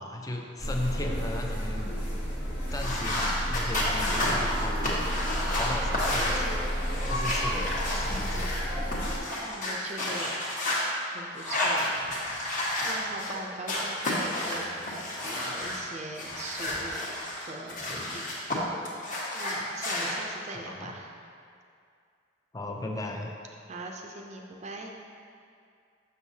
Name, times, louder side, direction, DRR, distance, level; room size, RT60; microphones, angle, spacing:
voice 1, 0.0-1.9 2.7-5.0 5.3-6.5 7.0-8.6 20.5-20.9 22.5-23.3, left 1 dB, 20° left, 2 dB, 0.4 m, -36 dB
sound 1, 0.6-9.2, equal, 65° left, 1.4 m, -31 dB
sound 2, 2.7-8.6 8.9-10.8 11.3-13.3 13.7-15.8 16.1-18.6 18.8-20.1, left 1 dB, 45° left, 1.1 m, -31 dB
voice 2, 9.4-10.3 11.1-12.6 12.8-18.2 19.3-21.1 23.7-24.9, right 2 dB, 35° right, 1 dB, 0.5 m, -41 dB
6.3 x 6.2 x 2.7 m, 2.4 s
head